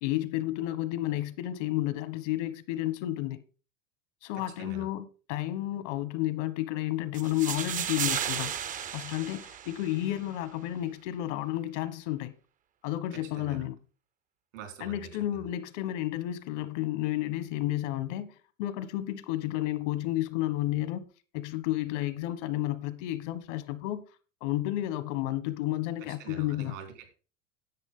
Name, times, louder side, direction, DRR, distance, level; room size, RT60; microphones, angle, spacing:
voice 1, 0.0-3.4 4.2-8.5 8.9-12.3 12.8-13.7 14.8-18.3 18.6-21.1 21.3-24.0 24.4-26.7, left 14 dB, 70° left, 1.3 m, -31 dB
voice 2, 4.3-4.9 13.1-13.7 14.5-15.5 26.0-27.1, right 7 dB, 85° right, 4.0 m, -45 dB
sound 1, 7.1-10.2, right 9 dB, 20° right, 0.5 m, -34 dB
10.5 x 8.2 x 3.8 m
supercardioid pair, 125°, 37 cm